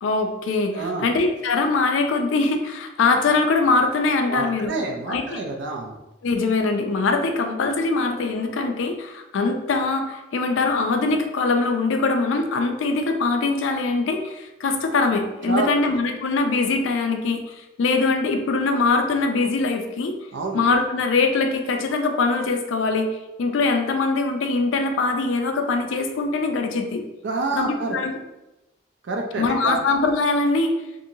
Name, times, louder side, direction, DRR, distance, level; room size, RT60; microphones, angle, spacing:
voice 1, 0.0-4.7 5.1-5.4 6.2-20.1 20.5-23.1 23.4-27.0 27.6-28.2 29.4-30.7, left 3 dB, 85° left, 5 dB, 0.4 m, -22 dB
voice 2, 0.7-1.1 4.3-5.9 15.5-15.7 20.3-20.6 27.2-28.0 29.0-29.7, right 3 dB, 70° right, 2 dB, 0.4 m, -27 dB
2.8 x 2.6 x 2.6 m, 0.98 s
head